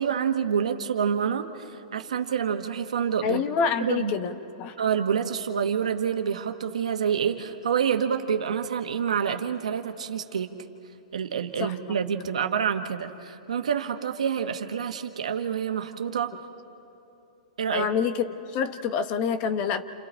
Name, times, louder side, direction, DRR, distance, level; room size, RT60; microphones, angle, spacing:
voice 1, 0.0-3.4 3.8-4.1 4.8-10.5 11.1-16.3 17.6-17.9, right 7 dB, 85° right, 6 dB, 1.3 m, -27 dB
voice 2, 3.2-4.7 11.6-11.7 12.3-12.5 17.7-19.8, left 6 dB, 40° left, 10 dB, 1.1 m, -27 dB
29.0 x 28.5 x 4.4 m, 3.0 s
hypercardioid pair, 130°, 4 cm